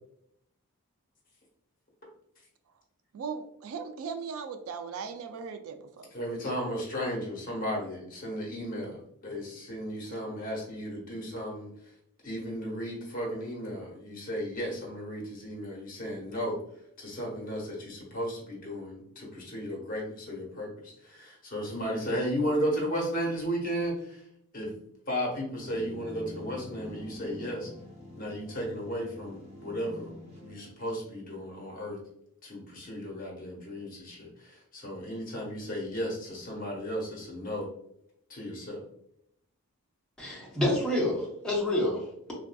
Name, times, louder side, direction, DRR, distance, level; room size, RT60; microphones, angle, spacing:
voice 1, 3.1-6.1, right 5 dB, 65° right, 8 dB, 0.3 m, -38 dB
voice 2, 6.1-11.7 12.2-16.6 17.0-24.2 24.5-24.7 25.1-27.7 28.2-32.0 32.4-37.7 38.3-38.8, equal, 40° left, -3 dB, 1.0 m, -34 dB
sound 1, 25.6-30.8, left 1 dB, 30° right, 0.7 m, -45 dB
voice 3, 40.2-42.3, left 1 dB, 5° left, -5 dB, 0.8 m, -28 dB
3.4 x 2.5 x 2.2 m, 0.73 s
head